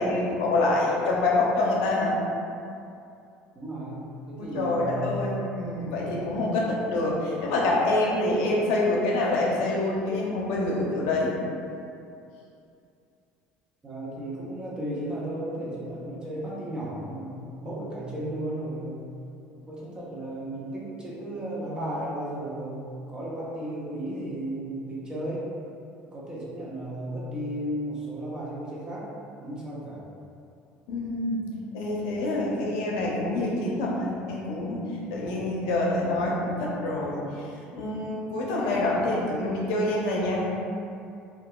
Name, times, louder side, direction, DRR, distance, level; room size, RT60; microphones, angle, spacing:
voice 1, 0.0-2.1 4.4-11.3 30.9-31.4 31.7-34.8 35.1-37.2 37.7-40.5, left 2 dB, 85° left, -3 dB, 0.5 m, -26 dB
voice 2, 3.5-5.1 13.8-19.0 19.7-25.4 26.1-29.1 29.4-30.0, right 1 dB, 20° right, -7 dB, 0.7 m, -34 dB
2.8 x 2.3 x 2.3 m, 2.5 s
cardioid pair, 120°, 4 cm